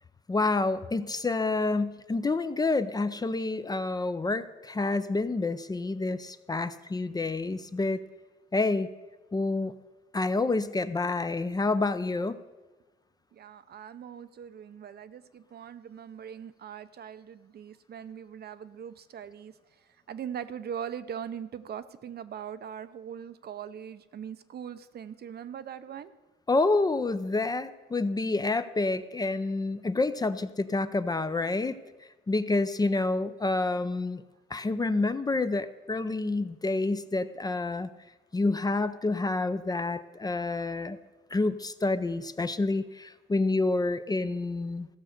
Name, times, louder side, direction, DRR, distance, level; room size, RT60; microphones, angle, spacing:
voice 1, 0.3-8.0 8.5-8.9 9.3-9.7 10.1-12.4 26.5-31.8 32.3-34.2 34.5-37.9 38.3-41.0 41.3-44.9, left 3 dB, 20° left, 11 dB, 0.5 m, -28 dB
voice 2, 13.3-26.1, right 8 dB, 55° right, 12 dB, 0.6 m, -41 dB
15.0 x 6.4 x 6.5 m, 1.2 s
cardioid pair, 90°, 20 cm